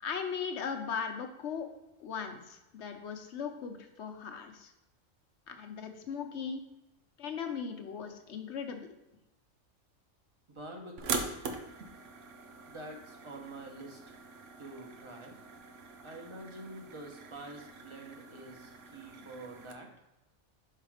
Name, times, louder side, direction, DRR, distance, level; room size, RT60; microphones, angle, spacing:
voice 1, 0.0-1.7 2.0-4.7 5.5-6.6 7.2-8.9, left 6 dB, 65° left, 5 dB, 1.1 m, -38 dB
voice 2, 10.5-11.3 12.7-14.1 14.6-15.3 16.0-19.9, right 2 dB, 25° right, 1 dB, 1.0 m, -47 dB
sound 1, 11.0-19.7, right 4 dB, 80° right, 1.1 m, -43 dB
5.8 x 4.0 x 4.9 m, 0.95 s
omnidirectional pair, 1.3 m